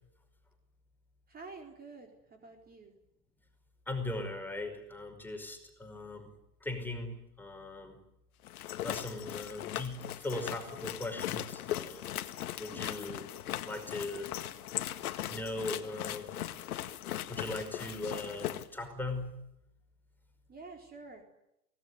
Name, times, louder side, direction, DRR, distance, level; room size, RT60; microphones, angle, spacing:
voice 1, 1.3-3.0 12.7-12.9 20.5-21.2, right 4 dB, 20° right, 3 dB, 4.3 m, -49 dB
voice 2, 3.9-6.3 6.6-8.0 8.8-12.1 12.6-13.2 13.7-14.3 15.3-16.3 17.3-19.3, left 2 dB, 5° left, 5 dB, 5.4 m, -39 dB
sound 1, 8.4-18.7, left 12 dB, 65° left, 1.9 m, -39 dB
24.0 x 19.0 x 9.6 m, 0.83 s
hypercardioid pair, 115°, 48 cm